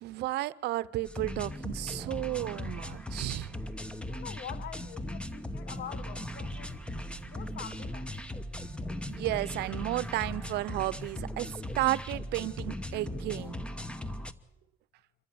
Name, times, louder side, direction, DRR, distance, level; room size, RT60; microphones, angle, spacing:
voice 1, 0.0-3.6 9.1-13.7, right 17 dB, 80° right, 0.7 m, -33 dB
sound 1, 1.1-14.3, left 1 dB, 5° left, 1.1 m, -38 dB
sound 2, 1.5-13.5, right 3 dB, 10° right, 6.0 m, -56 dB
voice 2, 4.0-6.8 7.2-8.2, left 10 dB, 70° left, 1.1 m, -45 dB
sound 3, 6.0-11.9, right 9 dB, 35° right, 0.8 m, -52 dB
26.0 x 14.5 x 7.8 m
cardioid pair, 110°, 17 cm